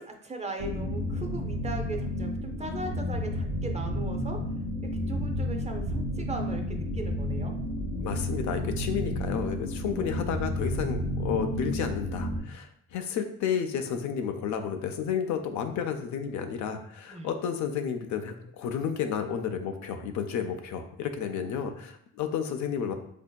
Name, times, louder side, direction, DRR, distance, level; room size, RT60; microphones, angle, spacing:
voice 1, 0.0-4.4 5.1-7.5 17.1-17.3, right 2 dB, 25° right, 4 dB, 0.5 m, -38 dB
sound 1, 0.6-12.4, equal, 70° right, 0.7 m, -31 dB
voice 2, 8.0-22.9, left 7 dB, 70° left, 6 dB, 0.5 m, -31 dB
4.2 x 2.6 x 2.2 m, 0.69 s
cardioid pair, 90°, 30 cm